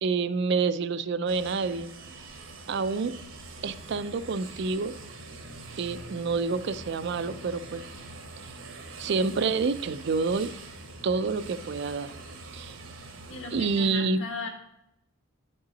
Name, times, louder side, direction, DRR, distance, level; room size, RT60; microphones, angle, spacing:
voice 1, 0.0-1.9 2.7-3.1 3.6-4.9 5.8-7.9 9.0-10.5 11.0-12.1 12.5-12.8 13.5-14.2, right 4 dB, 55° right, 14 dB, 0.4 m, -28 dB
sound 1, 1.3-13.9, right 3 dB, 70° right, 1.1 m, -44 dB
voice 2, 13.3-14.5, left 3 dB, 65° left, 3 dB, 1.5 m, -37 dB
10.0 x 5.4 x 4.0 m, 0.83 s
head